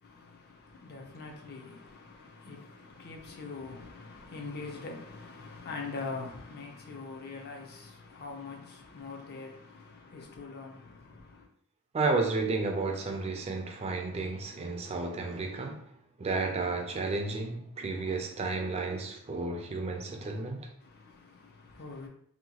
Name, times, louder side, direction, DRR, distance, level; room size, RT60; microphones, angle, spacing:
voice 1, 0.0-11.5 20.8-22.1, left 4 dB, 45° left, 0.5 m, -43 dB
voice 2, 11.9-15.8 16.2-20.7, right 3 dB, 30° right, 0.3 m, -32 dB
2.8 x 2.2 x 2.8 m
head